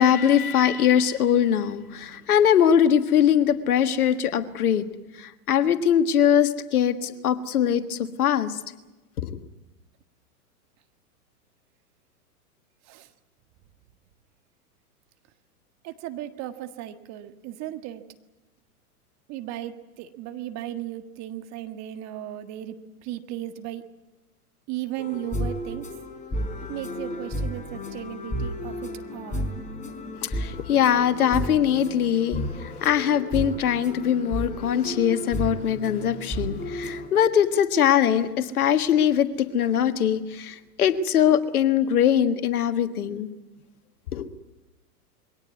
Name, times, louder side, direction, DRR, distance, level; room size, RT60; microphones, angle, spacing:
voice 1, 0.0-4.8 5.2-8.6 9.2-9.4 30.2-43.3 44.1-44.3, left 9 dB, 70° left, 10 dB, 1.7 m, -22 dB
voice 2, 15.8-18.0 19.3-22.7 23.0-23.8 24.7-25.9 26.7-29.5, right 13 dB, 35° right, 8 dB, 1.7 m, -36 dB
sound 1, 25.0-37.1, left 1 dB, 15° left, 4.1 m, -33 dB
22.5 x 18.0 x 9.5 m, 1.1 s
hypercardioid pair, 110°, 46 cm